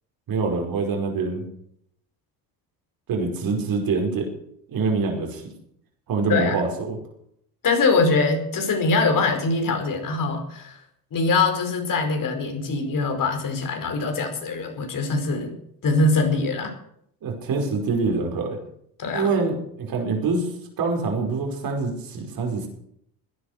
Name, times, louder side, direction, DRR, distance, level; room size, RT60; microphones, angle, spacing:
voice 1, 0.3-1.5 3.1-4.3 4.7-5.5 6.1-7.0 17.2-18.6 19.1-20.5 20.8-22.7, right 4 dB, 60° right, 2 dB, 5.2 m, -25 dB
voice 2, 7.6-10.8 11.1-15.5 15.8-16.7 19.0-19.3, left 3 dB, 55° left, 5 dB, 5.0 m, -23 dB
16.5 x 11.0 x 6.6 m, 0.71 s
supercardioid pair, 80°, 39 cm